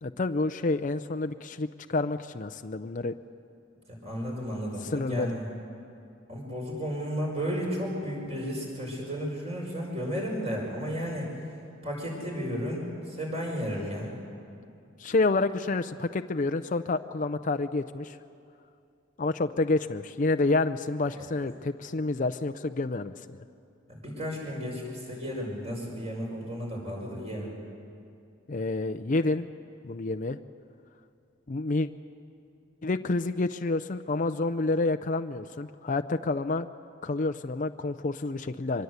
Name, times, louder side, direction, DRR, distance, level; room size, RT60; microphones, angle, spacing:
voice 1, 0.0-3.1 4.8-5.3 15.0-18.2 19.2-23.4 28.5-29.4 29.8-30.4 31.5-31.9 32.8-36.7 37.0-38.8, left 3 dB, 40° left, 8 dB, 0.5 m, -28 dB
voice 2, 3.9-5.5 6.3-11.3 11.8-14.1 21.1-21.3 23.9-27.5, equal, 30° right, -1 dB, 5.7 m, -33 dB
24.5 x 22.0 x 8.1 m, 2.6 s
head